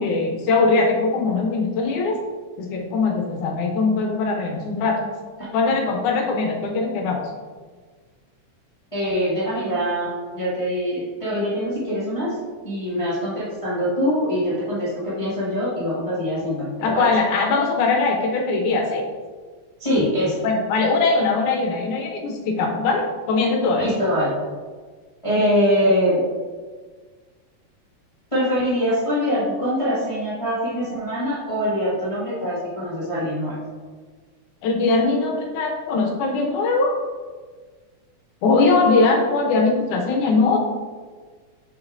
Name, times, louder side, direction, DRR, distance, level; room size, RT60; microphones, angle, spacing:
voice 1, 0.0-2.2 2.6-5.0 5.5-7.2 16.8-19.1 20.4-23.9 34.6-36.9 38.4-40.6, left 3 dB, 85° left, 2 dB, 2.3 m, -21 dB
voice 2, 8.9-12.3 12.6-17.1 19.8-20.4 23.8-24.3 25.2-26.2 28.3-33.6, equal, 20° left, -9 dB, 0.9 m, -23 dB
6.8 x 6.4 x 2.6 m, 1.5 s
omnidirectional pair, 3.4 m